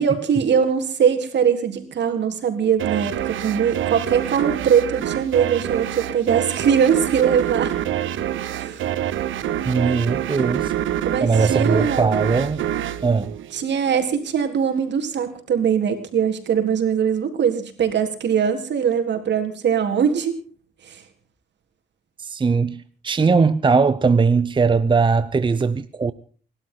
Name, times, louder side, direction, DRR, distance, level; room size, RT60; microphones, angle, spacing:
voice 1, 0.0-7.7 8.5-8.9 11.1-12.1 13.5-20.3 20.8-21.0, right 7 dB, 60° right, 3.8 m, -21 dB
sound 1, 2.8-14.1, right 11 dB, 80° right, 1.4 m, -26 dB
voice 2, 9.7-10.8 11.2-12.7 13.0-13.3 22.2-26.1, right 4 dB, 25° right, 0.8 m, -20 dB
28.5 x 12.5 x 4.0 m
cardioid pair, 90°, 20 cm